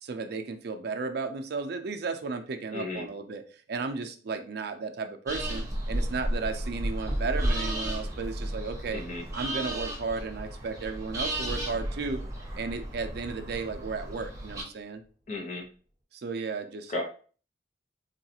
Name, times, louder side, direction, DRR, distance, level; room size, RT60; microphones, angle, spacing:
voice 1, 0.0-3.4 3.7-9.0 9.3-12.2 12.6-15.0 16.1-16.9, right 4 dB, 65° right, 6 dB, 0.4 m, -34 dB
voice 2, 2.7-3.1 8.9-9.2 15.3-15.7 16.9-17.0, left 2 dB, 45° left, 3 dB, 0.7 m, -34 dB
sound 1, 5.3-14.6, right 1 dB, 20° right, 0.9 m, -33 dB
sound 2, 7.0-11.1 11.4-14.8, equal, 5° left, 1.0 m, -40 dB
4.0 x 2.3 x 2.8 m, 0.40 s
head